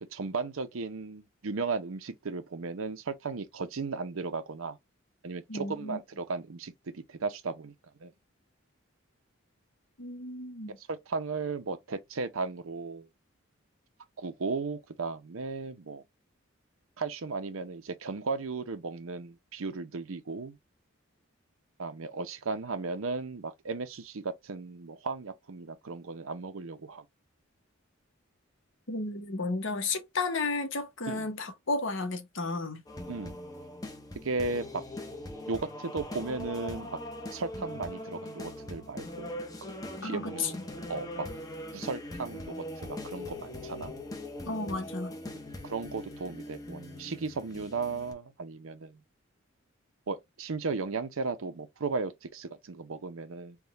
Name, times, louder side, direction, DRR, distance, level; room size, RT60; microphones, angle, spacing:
voice 1, 0.1-4.8 5.2-7.7 8.0-8.1 10.9-13.1 14.2-16.0 17.0-20.6 21.8-27.0 31.1-31.3 33.1-33.4 34.2-34.8 35.5-36.9 37.3-39.3 39.6-39.7 40.0-40.5 40.9-41.3 41.7-43.9 45.5-49.0 50.1-53.6, right 4 dB, 85° right, 0.7 m, -35 dB
voice 2, 5.5-6.0 10.0-10.7 28.9-32.8 40.0-40.5 44.5-45.2, left 3 dB, 70° left, 1.0 m, -33 dB
sound 1, 32.9-48.1, left 1 dB, 20° left, 0.7 m, -41 dB
3.5 x 2.3 x 4.1 m
head